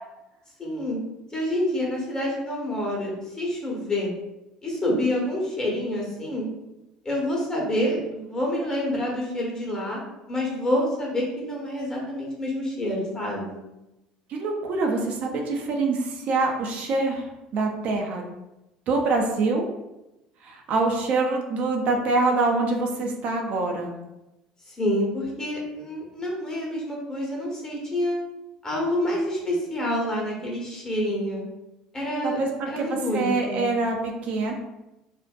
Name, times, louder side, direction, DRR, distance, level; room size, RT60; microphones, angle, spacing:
voice 1, 0.6-1.0 1.3-4.1 4.6-6.5 7.0-10.0 10.3-13.6 24.7-28.2 28.6-31.4 31.9-32.4 32.7-33.7, left 1 dB, 25° left, -3 dB, 1.0 m, -27 dB
voice 2, 14.3-18.2 18.9-19.7 20.4-23.9 32.2-34.5, right 3 dB, 55° right, 2 dB, 0.4 m, -25 dB
2.5 x 2.1 x 2.4 m, 0.95 s
hypercardioid pair, 70°, 3 cm